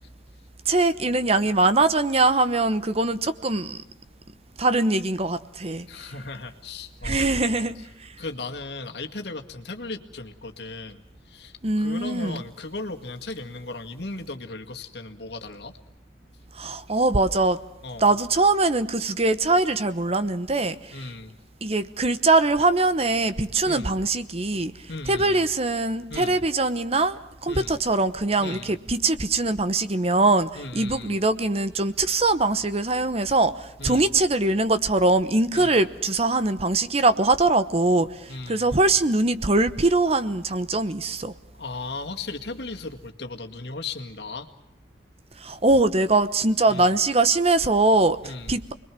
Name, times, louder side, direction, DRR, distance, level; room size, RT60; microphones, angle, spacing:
voice 1, 0.7-3.8 4.6-5.9 7.0-7.9 11.6-12.4 16.6-17.6 18.0-21.0 21.6-24.7 25.1-30.5 30.7-41.3 45.4-48.2 48.5-48.7, right 2 dB, 35° right, 1.0 m, -22 dB
voice 2, 5.9-7.9 8.2-15.7 17.8-18.1 20.9-21.4 23.6-24.0 24.9-25.5 26.1-26.4 27.5-27.8 28.4-28.7 30.6-31.2 33.8-34.1 35.5-35.8 38.3-38.7 41.5-44.5 46.7-46.9 48.2-48.6, left 3 dB, 65° left, 2.0 m, -37 dB
29.5 x 22.0 x 6.2 m
head